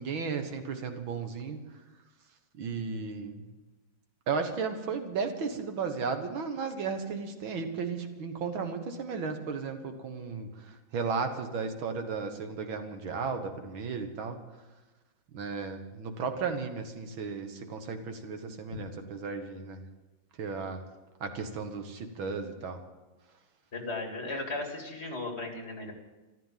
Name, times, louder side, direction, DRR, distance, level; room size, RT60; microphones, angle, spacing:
voice 1, 0.0-1.6 2.6-3.4 4.3-14.4 15.3-19.8 20.4-20.8 21.2-22.8, right 5 dB, 90° right, 6 dB, 2.2 m, -34 dB
voice 2, 23.7-25.9, left 2 dB, 35° left, 2 dB, 2.6 m, -36 dB
14.0 x 13.0 x 7.4 m, 1.1 s
omnidirectional pair, 2.1 m